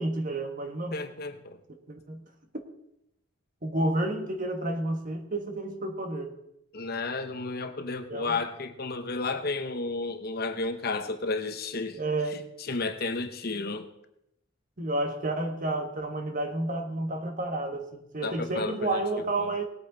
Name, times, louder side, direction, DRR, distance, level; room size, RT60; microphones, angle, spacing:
voice 1, 0.0-1.0 1.9-2.2 3.6-6.3 8.1-8.4 11.9-12.4 14.8-19.6, right 2 dB, 40° right, 6 dB, 1.4 m, -30 dB
voice 2, 0.9-1.6 6.7-12.0 12.3-13.9 18.2-19.5, left 3 dB, 50° left, 8 dB, 0.9 m, -32 dB
19.0 x 8.7 x 3.9 m, 0.83 s
head